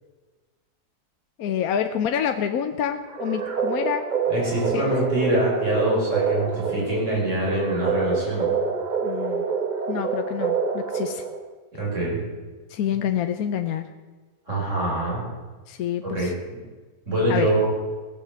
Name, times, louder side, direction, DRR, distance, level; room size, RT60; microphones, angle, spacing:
voice 1, 1.4-4.1 4.7-4.9 9.0-9.5 9.9-11.2 12.7-13.8 15.7-16.3 17.3-17.5, left 9 dB, 75° left, 7 dB, 1.1 m, -27 dB
sound 1, 3.1-11.5, right 5 dB, 35° right, 0.9 m, -27 dB
voice 2, 4.3-8.5 11.7-12.2 14.5-15.2 16.1-16.3 17.1-17.7, right 1 dB, 50° right, -5 dB, 5.8 m, -24 dB
17.0 x 7.4 x 7.0 m, 1.3 s
omnidirectional pair, 1.6 m